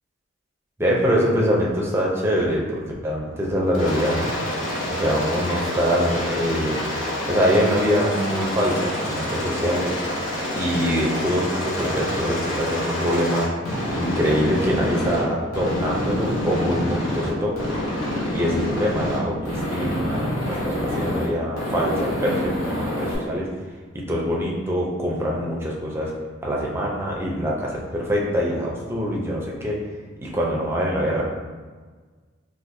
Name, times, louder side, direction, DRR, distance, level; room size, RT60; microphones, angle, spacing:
voice 1, 0.8-4.3 4.9-6.8 7.3-10.0 10.6-13.5 13.9-17.6 18.3-23.5 23.9-26.1 26.4-29.8 30.2-31.2, equal, 10° right, -3 dB, 0.5 m, -24 dB
Aircraft, 3.7-15.2 15.5-17.3 17.6-19.2 19.5-21.3 21.6-23.2, left 1 dB, 90° left, 1.0 m, -27 dB
4.0 x 2.5 x 2.5 m, 1.4 s
head